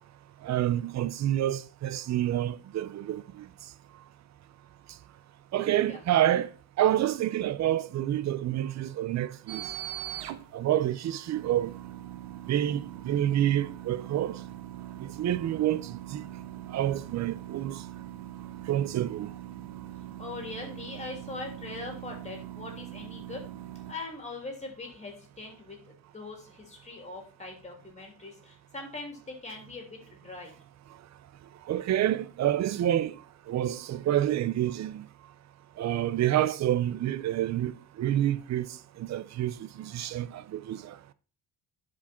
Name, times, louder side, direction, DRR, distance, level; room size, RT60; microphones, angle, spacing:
voice 1, 0.4-3.5 5.5-6.5 6.8-9.7 10.5-11.7 12.5-14.4 15.0-16.2 16.7-17.8 18.7-19.3 31.7-33.2 33.5-35.1 35.8-38.7 39.0-41.0, right 12 dB, 40° right, 0.5 m, -28 dB
sound 1, 9.5-23.9, right 13 dB, 80° right, 1.0 m, -42 dB
voice 2, 19.9-23.4 23.9-30.5, left 3 dB, 15° left, 2.8 m, -41 dB
10.5 x 5.1 x 4.3 m
cardioid pair, 145°, 41 cm